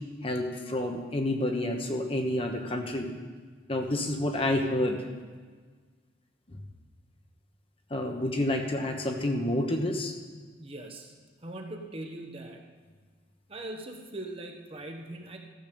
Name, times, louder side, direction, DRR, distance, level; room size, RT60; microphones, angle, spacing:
voice 1, 0.2-3.1 3.7-5.0 7.9-10.1, left 1 dB, 30° left, 3 dB, 1.1 m, -29 dB
voice 2, 10.6-11.1 11.4-12.6 13.5-15.4, right 1 dB, 30° right, 3 dB, 1.2 m, -41 dB
14.0 x 7.0 x 6.9 m, 1.5 s
head